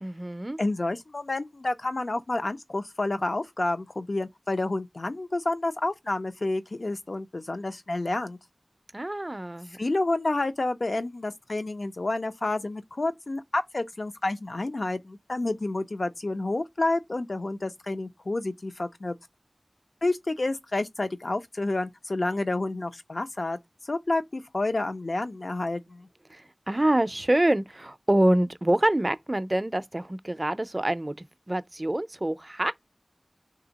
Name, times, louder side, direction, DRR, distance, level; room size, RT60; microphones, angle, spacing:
voice 1, 0.0-0.6 8.9-9.8 26.3-32.7, right 1 dB, 35° right, 0.4 m, -26 dB
voice 2, 0.6-8.4 9.8-19.2 20.0-26.1, left 2 dB, 75° left, 0.5 m, -29 dB
3.4 x 2.8 x 3.9 m
wide cardioid pair, 40°, 0 cm